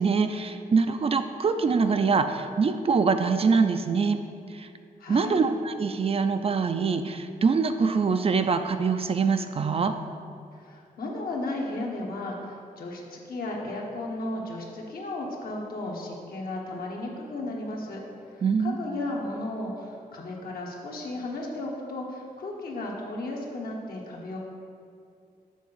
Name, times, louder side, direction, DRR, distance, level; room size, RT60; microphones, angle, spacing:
voice 1, 0.0-4.2 4.5-4.7 5.1-9.9 18.4-18.8, right 5 dB, 40° right, 8 dB, 0.4 m, -24 dB
voice 2, 5.0-5.4 10.5-18.0 18.3-24.4, left 2 dB, 70° left, -1 dB, 1.3 m, -34 dB
7.2 x 3.9 x 6.2 m, 2.3 s
cardioid pair, 95°, 16 cm